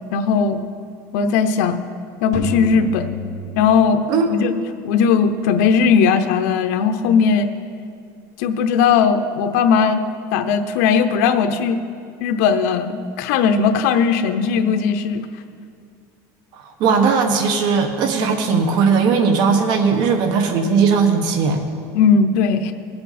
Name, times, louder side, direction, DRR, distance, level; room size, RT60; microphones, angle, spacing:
voice 1, 0.1-0.6 1.1-1.8 2.2-3.1 3.6-4.0 4.3-4.5 4.8-7.5 8.4-10.0 10.3-11.8 12.2-15.2 21.9-22.7, left 6 dB, 80° left, 8 dB, 0.8 m, -17 dB
sound 1, 2.3-4.5, left 3 dB, 45° left, 1.9 m, -29 dB
voice 2, 16.5-21.6, right 5 dB, 55° right, 5 dB, 1.3 m, -18 dB
18.0 x 7.9 x 4.2 m, 2.2 s
cardioid pair, 145°, 9 cm